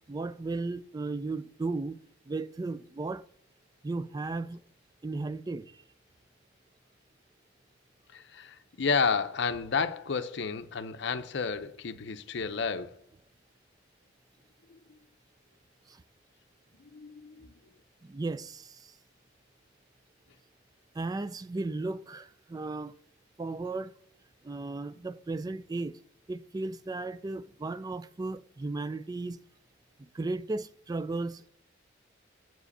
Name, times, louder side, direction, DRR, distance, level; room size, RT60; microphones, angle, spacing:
voice 1, 0.1-2.0 2.3-3.2 3.8-4.6 5.0-5.8 15.9-16.0 18.0-19.0 20.9-22.9 23.4-23.9 24.4-25.9 26.3-29.4 30.0-31.5, right 3 dB, 20° right, 0.3 m, -35 dB
voice 2, 8.1-13.0 14.7-14.8 16.8-17.5, left 5 dB, 60° left, 0.6 m, -31 dB
7.8 x 5.0 x 6.6 m
head